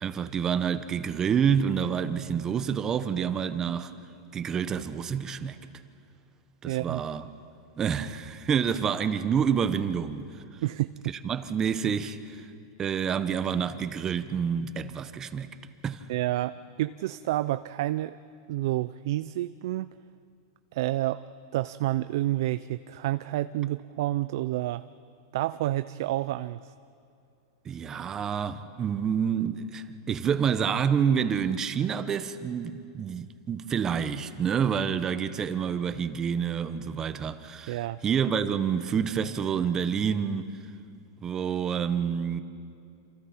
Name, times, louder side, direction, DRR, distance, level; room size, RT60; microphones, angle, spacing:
voice 1, 0.0-3.9 4.3-5.6 6.6-7.3 7.8-10.4 11.2-12.5 12.8-15.5 15.8-16.0 27.6-40.5 41.2-42.4, right 7 dB, 25° right, 1.1 m, -28 dB
voice 2, 6.6-7.0 10.6-10.9 16.1-18.2 18.5-19.9 20.7-21.2 21.5-24.8 25.3-26.7 37.7-38.0, right 15 dB, 65° right, 0.5 m, -29 dB
28.0 x 27.5 x 4.5 m
hypercardioid pair, 125°, 2 cm